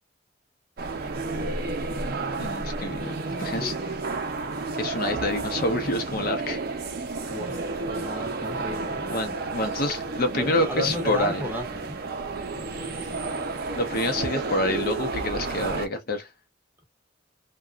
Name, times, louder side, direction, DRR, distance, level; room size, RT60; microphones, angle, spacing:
sound 1, 0.8-15.9, right 3 dB, 50° right, 0.5 m, -31 dB
voice 1, 2.4-3.7 4.8-6.6 9.1-11.4 13.7-16.3, left 1 dB, 50° left, 0.7 m, -27 dB
voice 2, 7.3-9.0 10.4-12.0 12.5-13.2, left 1 dB, 10° right, 0.7 m, -34 dB
2.9 x 2.3 x 2.3 m
head